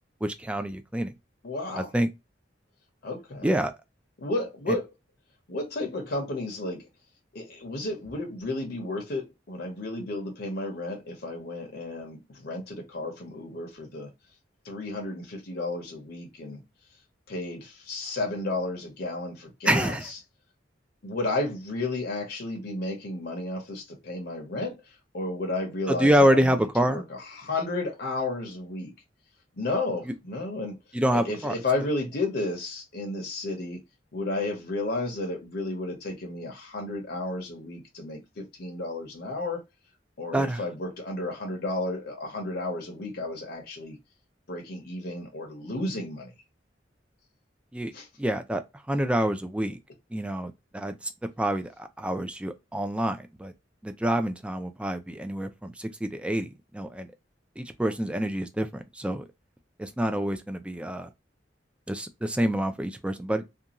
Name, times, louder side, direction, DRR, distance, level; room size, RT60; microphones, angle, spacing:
voice 1, 0.2-1.1 1.7-2.1 3.4-3.7 4.7-4.8 19.7-20.1 25.9-27.0 30.9-31.6 40.3-40.6 47.7-47.9 48.2-48.6 48.9-49.8 50.1-51.1 51.4-53.5 53.8-57.1 57.6-59.3 59.8-61.1 61.9-63.5, right 1 dB, 5° right, 0.3 m, -27 dB
voice 2, 1.4-1.9 3.0-3.5 4.2-4.9 5.5-6.9 7.3-14.1 14.6-16.6 17.3-20.2 21.0-26.6 26.9-28.9 29.6-30.8 31.1-33.8 34.1-39.6 40.2-44.0 44.5-46.3 47.9-48.1, left 2 dB, 55° left, 0.7 m, -32 dB
2.4 x 2.3 x 2.9 m
head